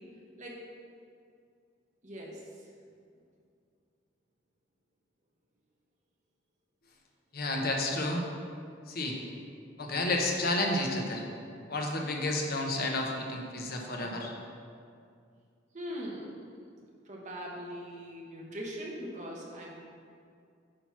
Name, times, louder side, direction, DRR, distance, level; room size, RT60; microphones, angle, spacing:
voice 1, 2.0-2.7 15.7-16.3 17.0-19.7, equal, 40° right, -2 dB, 1.2 m, -41 dB
voice 2, 7.3-8.2 8.9-9.2 9.8-11.2 11.7-14.3, left 2 dB, 55° left, 1 dB, 0.9 m, -31 dB
8.7 x 3.0 x 5.8 m, 2.3 s
head